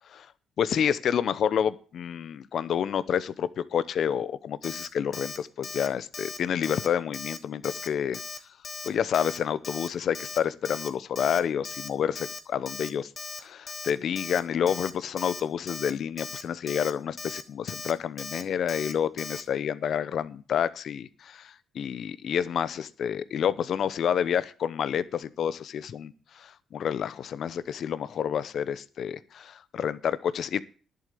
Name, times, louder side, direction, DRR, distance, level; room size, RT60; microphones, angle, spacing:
voice 1, 0.6-3.2 3.6-8.2 8.8-13.1 13.4-30.6, left 8 dB, 65° left, 16 dB, 0.8 m, -29 dB
Alarm, 4.6-4.9 5.1-5.4 5.6-5.9 6.1-6.4 6.6-6.9 7.1-7.4 7.6-7.9 8.1-8.4 8.6-8.9 9.1-9.4 9.6-9.9 10.1-10.4 10.6-10.9 11.1-11.4 11.6-11.9 12.1-12.4 12.7-12.9 13.2-13.4 13.7-13.9 14.2-14.4 14.7-14.9 15.2-15.4 15.7-15.9 16.2-16.4 16.7-16.9 17.2-17.4 17.7-17.9 18.2-18.4 18.7-18.9 19.2-19.4, left 3 dB, 30° left, 1.4 m, -38 dB
11.0 x 7.8 x 6.9 m, 0.39 s
cardioid pair, 90°, 0 cm